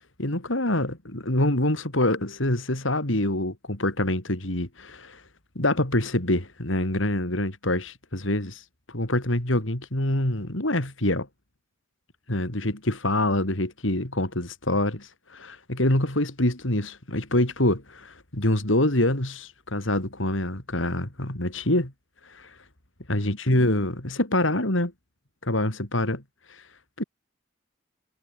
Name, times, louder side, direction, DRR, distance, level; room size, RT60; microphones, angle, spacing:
voice 1, 0.2-5.2 5.6-8.6 8.9-11.3 12.3-21.9 22.3-22.5 23.1-24.9 25.4-26.2 26.5-26.6 27.0-27.1, left 1 dB, 75° left, 4.2 m, -25 dB
head